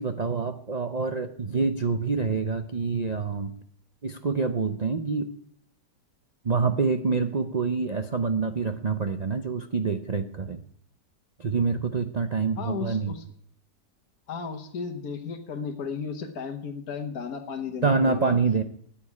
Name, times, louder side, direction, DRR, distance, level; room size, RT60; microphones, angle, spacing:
voice 1, 0.0-3.5 4.0-5.3 6.4-10.6 11.4-13.1 17.8-18.6, right 4 dB, 85° right, 8 dB, 0.3 m, -26 dB
voice 2, 12.6-13.2 14.3-18.3, left 6 dB, 60° left, 3 dB, 1.6 m, -34 dB
13.0 x 8.8 x 9.7 m, 0.66 s
omnidirectional pair, 1.9 m